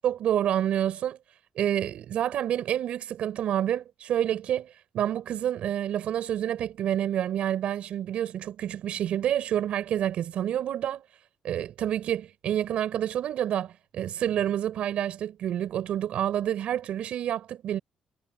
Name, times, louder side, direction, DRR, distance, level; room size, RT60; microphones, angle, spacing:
voice 1, 0.0-1.2 1.6-11.0 11.4-17.8, right 10 dB, 70° right, 5.3 m, -28 dB
cardioid pair, 100°, 2 cm